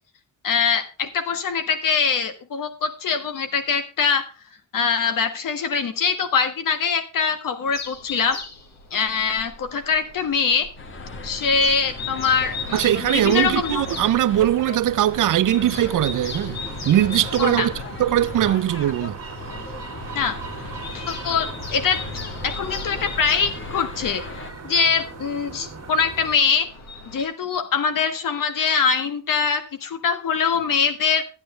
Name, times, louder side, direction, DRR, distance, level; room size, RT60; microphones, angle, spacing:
voice 1, 0.4-4.2 4.7-8.4 8.9-10.7 11.2-13.8 17.4-17.7 20.1-20.4 20.9-22.0 22.4-24.2 24.6-26.7 27.1-31.2, left 6 dB, 70° left, 1.5 m, -23 dB
sound 1, 7.7-27.2, left 4 dB, 50° left, 1.9 m, -39 dB
sound 2, 10.8-24.5, left 3 dB, 35° left, 1.3 m, -36 dB
sound 3, 12.3-26.4, right 5 dB, 45° right, 2.0 m, -40 dB
voice 2, 12.7-17.7 18.0-19.2, right 12 dB, 65° right, 0.6 m, -20 dB
12.5 x 9.1 x 3.3 m
wide cardioid pair, 160°, 34 cm